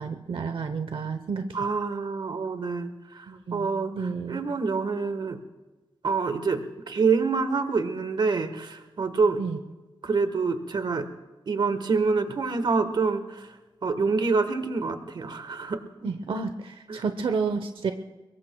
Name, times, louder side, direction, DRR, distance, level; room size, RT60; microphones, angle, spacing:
voice 1, 0.0-1.7 3.3-4.4 9.4-9.6 16.0-17.9, right 5 dB, 85° right, 8 dB, 0.9 m, -31 dB
voice 2, 1.5-5.4 6.0-9.4 10.0-11.1 11.5-13.5 13.8-15.8 16.9-17.0, right 4 dB, 60° right, 9 dB, 1.4 m, -26 dB
23.5 x 22.5 x 2.3 m, 1.2 s
wide cardioid pair, 160°, 9 cm